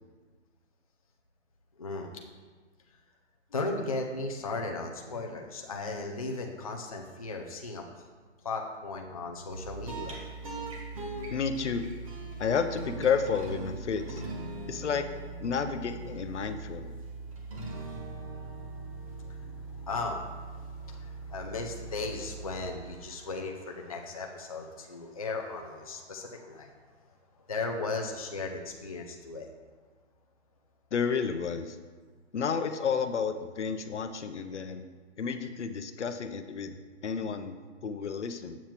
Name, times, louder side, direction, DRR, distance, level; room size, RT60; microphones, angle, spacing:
voice 1, 1.8-2.1 3.5-7.8 8.4-10.2 18.4-18.5 18.8-26.7 27.5-29.5, left 3 dB, 30° left, 2 dB, 0.4 m, -36 dB
sound 1, 9.5-23.1, right 3 dB, 30° right, 1.0 m, -41 dB
voice 2, 11.3-11.8 12.4-14.2 14.7-15.1 15.4-16.9 30.9-31.8 32.3-34.8 35.2-38.6, left 6 dB, 75° left, 9 dB, 0.7 m, -31 dB
8.4 x 7.3 x 2.9 m, 1.4 s
hypercardioid pair, 170°, 36 cm